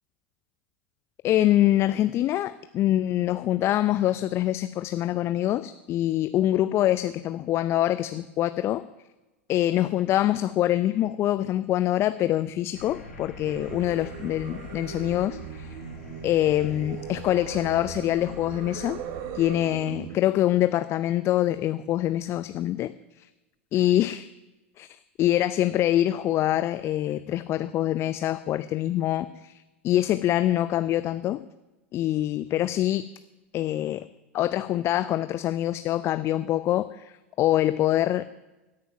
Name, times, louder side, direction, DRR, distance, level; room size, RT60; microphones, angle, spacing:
voice 1, 1.2-8.8 9.5-15.7 16.2-19.0 19.3-22.9 23.2-23.3 23.7-24.3 24.8-24.9 25.2-31.4 31.9-33.0 33.5-34.0 34.3-38.3, left 13 dB, 40° left, 13 dB, 0.5 m, -25 dB
sound 1, 12.7-19.5, left 1 dB, 90° left, 4.0 m, -44 dB
Singing, 13.4-20.2, right 9 dB, 50° right, 1.2 m, -39 dB
16.5 x 9.6 x 5.9 m, 1.1 s
figure-of-eight pair, 85°, 7 cm